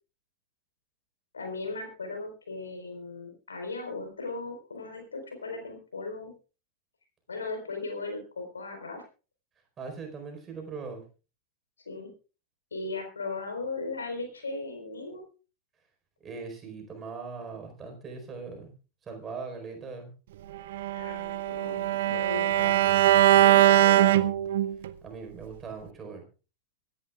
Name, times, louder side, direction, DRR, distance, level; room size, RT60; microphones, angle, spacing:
voice 1, 1.3-6.3 7.3-9.0 11.9-12.1 12.7-15.2 20.9-23.0 23.4-24.3, left 3 dB, 75° left, 4 dB, 4.3 m, -37 dB
voice 2, 9.8-11.0 16.2-18.7 19.0-20.1 25.0-26.2, right 4 dB, 20° right, 4 dB, 4.5 m, -40 dB
Bowed string instrument, 20.7-24.9, right 13 dB, 55° right, 0.7 m, -22 dB
24.5 x 11.0 x 2.4 m, 0.33 s
figure-of-eight pair, 90°, 0 cm